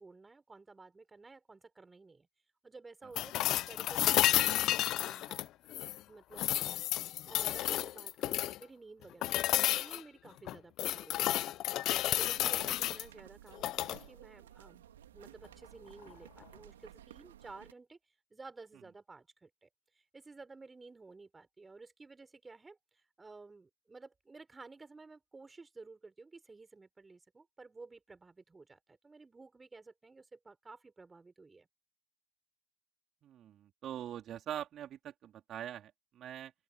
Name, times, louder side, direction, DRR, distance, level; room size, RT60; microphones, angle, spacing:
voice 1, 0.0-2.3 2.6-6.5 7.3-14.9 15.1-18.0 18.3-19.7 19.9-31.7, right 3 dB, 15° right, 5.8 m, -54 dB
sound 1, 3.1-6.0 6.3-8.6 9.2-10.0 10.5-13.0 13.5-14.0 16.0-16.1, left 14 dB, 50° left, 0.9 m, -31 dB
sound 2, 12.1-17.7, right 12 dB, 80° right, 2.7 m, -56 dB
voice 2, 33.2-36.5, right 10 dB, 40° right, 4.5 m, -43 dB
open air
hypercardioid pair, 90°, 0 cm